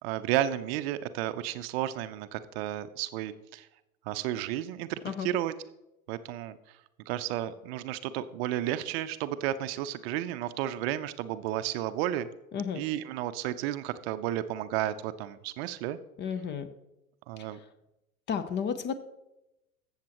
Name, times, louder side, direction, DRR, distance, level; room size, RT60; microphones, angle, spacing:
voice 1, 0.0-3.7 4.1-5.5 6.1-6.6 7.1-12.3 12.8-16.0 17.3-17.6, right 12 dB, 45° right, 12 dB, 0.6 m, -32 dB
voice 2, 12.5-12.8 16.2-16.7 17.4-17.6 18.3-18.9, left 7 dB, 25° left, 12 dB, 0.6 m, -33 dB
14.5 x 7.3 x 3.0 m, 0.93 s
hypercardioid pair, 90°, 43 cm